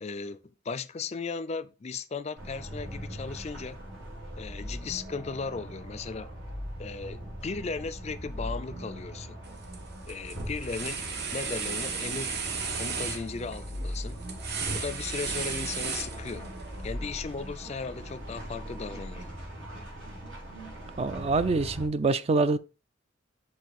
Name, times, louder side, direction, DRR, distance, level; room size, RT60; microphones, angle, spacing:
voice 1, 0.0-3.8 4.4-6.3 6.8-9.4 10.1-12.4 12.7-14.2 14.7-16.5 16.8-19.4, left 4 dB, 35° left, 0.4 m, -36 dB
sound 1, 2.4-21.9, equal, 80° right, 3.5 m, -40 dB
sound 2, 9.4-9.8 10.1-16.6, right 5 dB, 55° right, 1.0 m, -34 dB
voice 2, 21.0-22.6, right 3 dB, 35° right, 0.3 m, -25 dB
6.5 x 4.3 x 4.1 m
head